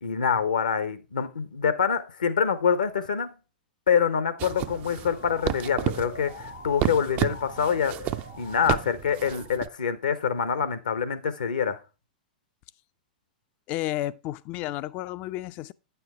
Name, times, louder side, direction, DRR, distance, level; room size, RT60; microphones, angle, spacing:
voice 1, 0.0-3.3 3.9-7.9 8.4-11.8, left 7 dB, 75° left, 0.8 m, -25 dB
Motor vehicle (road) / Siren, 4.0-9.8, left 4 dB, 90° left, 1.4 m, -44 dB
sound 1, 4.4-9.7, right 14 dB, 35° right, 0.4 m, -32 dB
voice 2, 13.7-15.7, left 15 dB, 40° left, 0.4 m, -32 dB
9.1 x 6.9 x 3.5 m
figure-of-eight pair, 100°, 4 cm